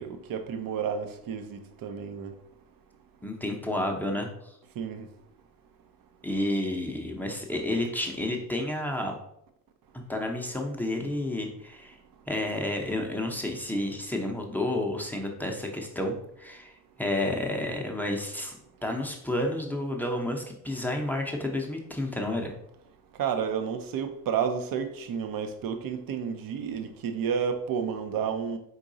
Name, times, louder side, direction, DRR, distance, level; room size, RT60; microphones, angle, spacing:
voice 1, 0.0-2.3 4.8-5.1 23.2-28.6, right 7 dB, 45° right, 0.7 m, -31 dB
voice 2, 3.2-4.5 6.2-9.2 9.9-12.0 12.3-22.5, left 1 dB, 5° left, 0.8 m, -31 dB
4.5 x 3.9 x 2.7 m
figure-of-eight pair, 45°, 49 cm